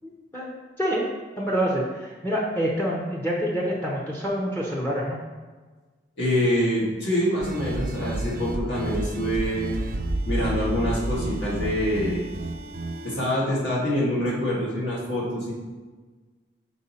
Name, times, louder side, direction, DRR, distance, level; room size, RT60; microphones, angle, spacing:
voice 1, 0.0-1.1 1.4-5.2, equal, 10° left, -4 dB, 0.6 m, -27 dB
voice 2, 6.2-9.9 10.3-12.3 13.0-15.5, equal, 70° left, -6 dB, 1.9 m, -25 dB
sound 1, 7.4-13.1, right 2 dB, 45° right, 0.5 m, -30 dB
5.3 x 4.5 x 4.2 m, 1.3 s
head